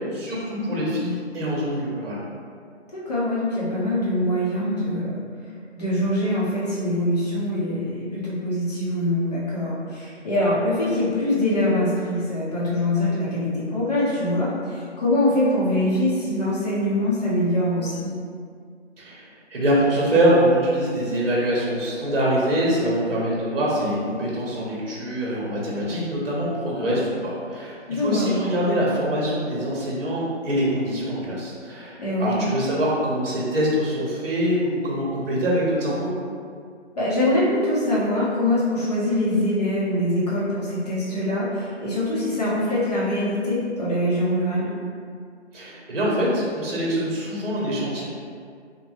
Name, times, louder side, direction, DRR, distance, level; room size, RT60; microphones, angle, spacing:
voice 1, 0.1-2.2 19.0-36.1 45.5-48.0, equal, 55° right, -5 dB, 0.9 m, -24 dB
voice 2, 2.9-5.2 5.8-18.1 27.9-28.4 32.0-32.4 37.0-44.7, left 1 dB, 35° left, -8 dB, 0.7 m, -23 dB
2.8 x 2.2 x 3.0 m, 2.2 s
figure-of-eight pair, 160°, 35 cm